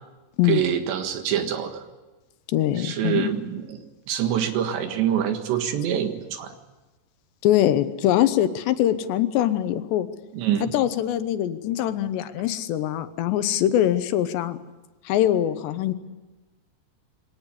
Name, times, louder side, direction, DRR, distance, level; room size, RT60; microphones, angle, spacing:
voice 1, 0.4-1.8 2.8-6.6 10.3-10.8, right 9 dB, 80° right, 7 dB, 4.0 m, -26 dB
voice 2, 2.5-3.3 7.4-10.1 10.6-14.6 15.1-15.9, left 12 dB, 80° left, 11 dB, 3.2 m, -23 dB
23.0 x 18.0 x 9.9 m, 1.1 s
omnidirectional pair, 5.0 m